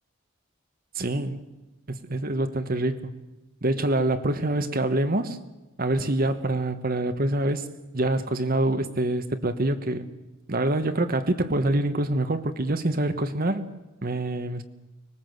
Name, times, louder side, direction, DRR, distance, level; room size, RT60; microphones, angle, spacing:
voice 1, 0.9-1.4 1.9-3.1 3.6-5.4 5.8-7.7 7.9-10.1 10.5-13.6 14.0-14.6, right 1 dB, 45° right, 1.2 m, -25 dB
24.5 x 20.5 x 7.9 m
head